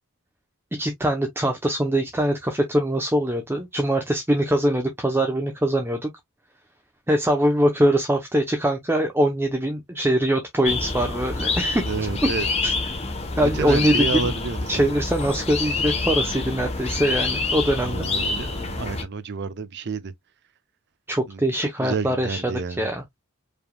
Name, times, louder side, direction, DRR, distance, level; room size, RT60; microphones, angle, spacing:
voice 1, 0.7-6.1 7.1-11.9 12.2-12.3 12.6-12.7 13.4-14.3 14.7-18.1 21.1-23.0, right 1 dB, 10° right, 0.7 m, -23 dB
sound 1, 10.6-19.0, left 3 dB, 30° left, 1.1 m, -27 dB
voice 2, 11.9-12.5 13.5-14.9 17.8-20.1 21.3-22.9, right 4 dB, 50° right, 0.6 m, -30 dB
4.8 x 3.5 x 2.2 m
head